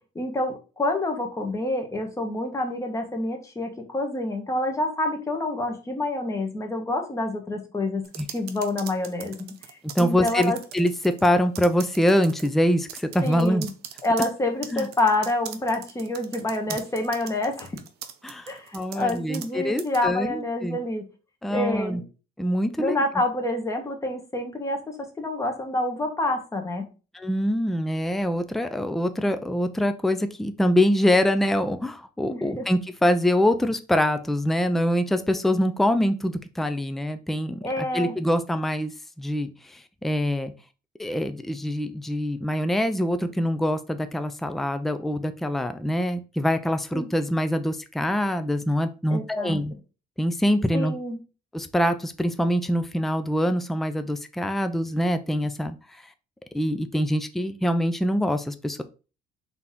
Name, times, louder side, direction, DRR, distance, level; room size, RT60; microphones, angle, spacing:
voice 1, 0.1-8.1 8.3-10.6 13.2-13.7 14.0-17.7 18.5-21.1 21.5-22.0 22.8-26.9 32.3-32.7 37.6-38.2 46.9-47.1 49.1-49.6 50.7-51.2, left 2 dB, 20° left, 3 dB, 1.0 m, -27 dB
sound 1, 8.0-11.3 11.5-12.5 12.9-19.5 19.8-20.0, right 10 dB, 75° right, 0.6 m, -40 dB
voice 2, 10.0-13.6 14.7-14.9 16.7-16.8 18.2-20.8 21.4-22.0 22.4-23.0 27.1-38.9 39.2-40.5 41.0-49.7 50.2-50.9 51.5-55.7 56.5-58.8, equal, ahead, 10 dB, 0.3 m, -24 dB
4.0 x 2.8 x 3.6 m, 0.33 s
cardioid pair, 110°, 17 cm